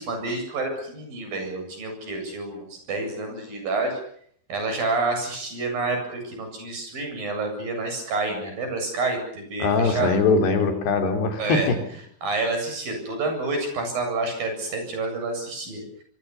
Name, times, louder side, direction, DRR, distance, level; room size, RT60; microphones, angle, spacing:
voice 1, 0.0-4.0 4.5-10.2 11.4-11.7 12.2-15.8, right 3 dB, 60° right, 5 dB, 9.6 m, -28 dB
voice 2, 9.6-11.6, left 4 dB, 85° left, 5 dB, 5.4 m, -21 dB
24.5 x 24.5 x 7.2 m, 0.64 s
omnidirectional pair, 4.6 m